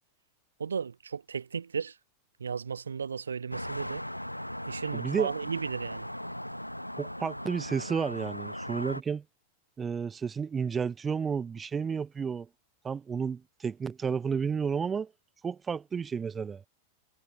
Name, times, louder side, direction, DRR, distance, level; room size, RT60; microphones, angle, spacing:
voice 1, 0.6-2.0 2.4-4.0 4.7-6.1, right 6 dB, 70° right, 1.1 m, -35 dB
sound 1, 3.5-9.0, equal, 90° left, 1.0 m, -38 dB
voice 2, 4.9-5.3 7.0-9.2 9.8-12.5 12.8-15.1 15.4-16.6, right 6 dB, 20° right, 0.5 m, -31 dB
figure-of-eight pair, 90°, 0 cm